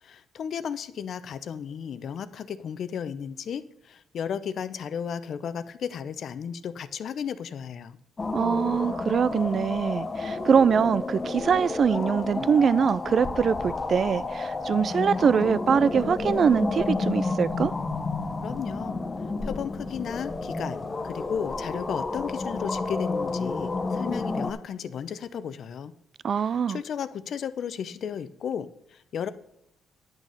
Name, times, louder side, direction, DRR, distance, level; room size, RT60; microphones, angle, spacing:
voice 1, 0.0-8.0 18.4-19.0 19.4-25.9 26.3-29.3, left 7 dB, 60° left, 0.7 m, -34 dB
sound 1, 8.2-24.5, left 3 dB, 30° left, 1.1 m, -30 dB
voice 2, 8.3-17.7 26.2-26.8, right 7 dB, 50° right, 0.3 m, -23 dB
10.5 x 6.4 x 6.9 m
cardioid pair, 90°, 0 cm